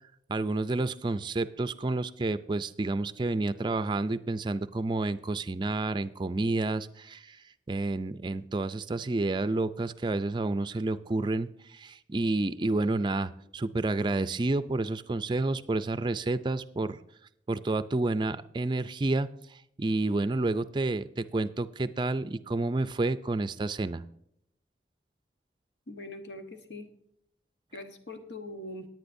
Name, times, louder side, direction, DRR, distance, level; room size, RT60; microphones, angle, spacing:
voice 1, 0.3-7.4 7.7-17.0 17.5-24.0, right 2 dB, 25° right, 13 dB, 0.4 m, -30 dB
voice 2, 25.9-26.9 27.7-28.9, left 1 dB, 85° left, 5 dB, 1.2 m, -42 dB
18.0 x 9.1 x 2.6 m, 0.76 s
head